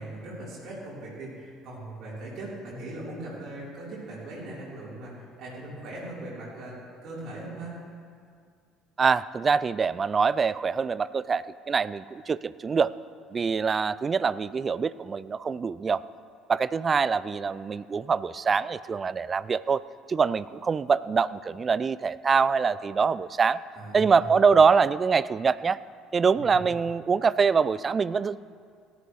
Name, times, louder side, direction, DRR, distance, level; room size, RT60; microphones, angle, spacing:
voice 1, 0.0-6.8 7.0-7.8 23.8-24.4 26.3-26.6, right 2 dB, 50° right, -7 dB, 3.6 m, -39 dB
voice 2, 9.0-12.9 13.3-16.0 16.5-19.8 20.1-23.6 23.9-25.8 26.1-28.4, right 5 dB, 30° right, 18 dB, 0.3 m, -24 dB
17.5 x 11.5 x 3.1 m, 2.2 s
figure-of-eight pair, 55°, 0 cm